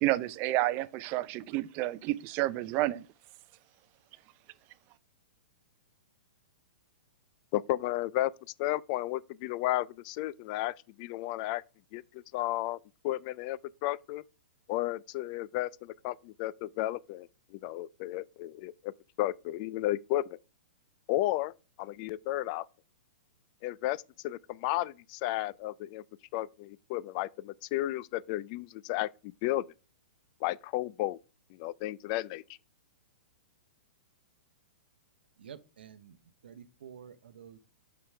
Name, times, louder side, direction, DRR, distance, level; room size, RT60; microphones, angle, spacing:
voice 1, 0.0-3.0, right 16 dB, 35° right, 0.5 m, -30 dB
voice 2, 7.5-8.3 8.6-11.6 11.9-12.8 13.0-14.2 14.7-18.9 19.2-20.4 21.1-21.5 21.8-22.7 23.6-26.0 26.3-29.1 29.4-29.6 30.4-31.2 31.6-32.4, left 16 dB, 40° left, 0.3 m, -33 dB
voice 3, 35.4-36.1 36.4-37.6, right 8 dB, 70° right, 0.8 m, -49 dB
7.0 x 5.6 x 3.2 m
hypercardioid pair, 115°, 6 cm